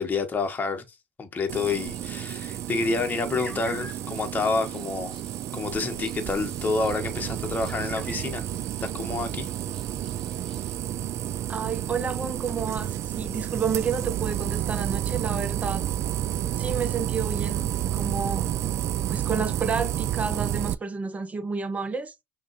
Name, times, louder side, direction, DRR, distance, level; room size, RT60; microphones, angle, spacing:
voice 1, 0.0-5.2 5.5-8.5 8.8-9.5, left 4 dB, 25° left, 1.0 m, -28 dB
sound 1, 1.5-20.7, right 12 dB, 45° right, 0.3 m, -30 dB
sound 2, 1.7-10.8, equal, 10° left, 1.7 m, -50 dB
voice 2, 11.5-15.8 16.5-18.5 19.1-22.1, right 5 dB, 20° right, 0.7 m, -30 dB
6.0 x 2.3 x 2.5 m
hypercardioid pair, 75°, 7 cm